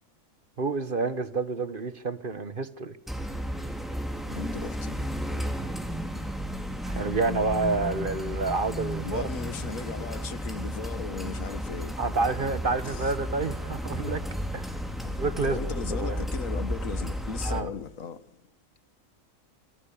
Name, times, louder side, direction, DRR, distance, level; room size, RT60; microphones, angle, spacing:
voice 1, 0.6-3.0 6.8-9.3 12.0-14.2 14.5-14.7 15.1-16.2 17.4-17.7, right 3 dB, 40° right, 1.3 m, -29 dB
sound 1, 3.1-17.6, equal, ahead, 3.1 m, -33 dB
voice 2, 4.3-5.0 9.0-12.0 12.8-13.1 15.0-15.2 15.5-18.4, left 5 dB, 75° left, 1.7 m, -37 dB
26.5 x 20.5 x 8.6 m
omnidirectional pair, 1.4 m